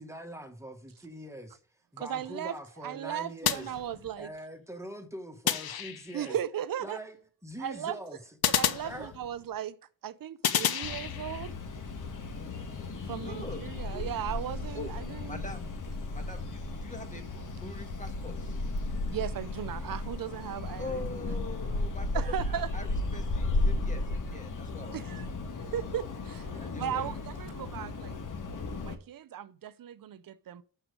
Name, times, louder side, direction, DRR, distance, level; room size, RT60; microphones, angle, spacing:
voice 1, 0.0-1.6 1.9-3.7 4.2-6.4 6.8-7.2 7.4-8.2 8.8-9.2, equal, 5° right, 1.8 m, -43 dB
voice 2, 2.0-2.6 2.8-4.3 6.1-7.0 7.6-8.0 8.5-9.8 10.0-11.6 13.1-15.4 19.1-21.0 22.1-22.7 24.9-25.3 25.7-28.2 28.8-30.6, right 10 dB, 60° right, 0.6 m, -36 dB
sound 1, 3.4-4.4 5.5-6.3 8.4-9.5 10.4-11.5, left 9 dB, 65° left, 0.9 m, -31 dB
sound 2, 10.8-28.9, left 2 dB, 50° left, 1.7 m, -35 dB
voice 3, 13.2-13.6 13.9-14.1 14.7-14.9 15.3-15.6 16.1-18.5 20.8-25.2 26.6-27.1, left 2 dB, 20° left, 1.8 m, -43 dB
6.6 x 5.9 x 5.1 m
cardioid pair, 65°, 39 cm